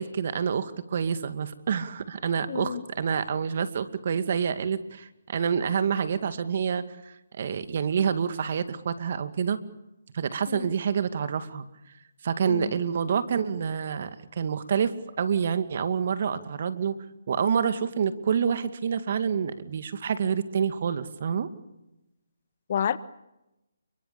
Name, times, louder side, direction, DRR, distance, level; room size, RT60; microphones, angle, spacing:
voice 1, 0.0-9.6 10.1-11.7 12.2-16.9 17.3-21.5, right 7 dB, 50° right, 10 dB, 2.3 m, -27 dB
voice 2, 2.5-2.8 10.5-10.7 12.5-12.7 22.7-23.0, left 8 dB, 45° left, 15 dB, 1.4 m, -29 dB
30.0 x 23.5 x 7.0 m, 0.93 s
figure-of-eight pair, 150°, 0 cm